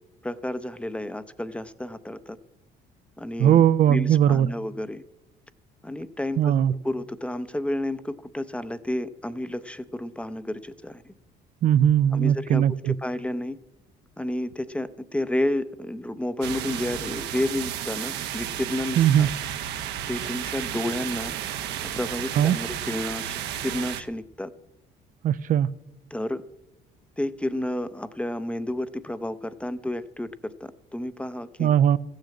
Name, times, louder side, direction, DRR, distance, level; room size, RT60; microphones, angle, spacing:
voice 1, 0.2-2.4 3.2-5.0 5.8-11.1 12.1-13.6 14.2-19.3 20.1-21.3 21.9-24.5 26.1-26.4 27.2-31.7, left 1 dB, 5° left, 14 dB, 0.6 m, -31 dB
voice 2, 3.4-4.5 6.4-6.7 11.6-12.9 19.0-19.3 22.4-22.6 25.2-25.7 31.6-32.0, right 10 dB, 50° right, 15 dB, 0.4 m, -19 dB
sound 1, 16.4-24.0, right 10 dB, 85° right, 0.9 m, -32 dB
14.5 x 6.5 x 8.4 m, 0.98 s
cardioid pair, 110°, 17 cm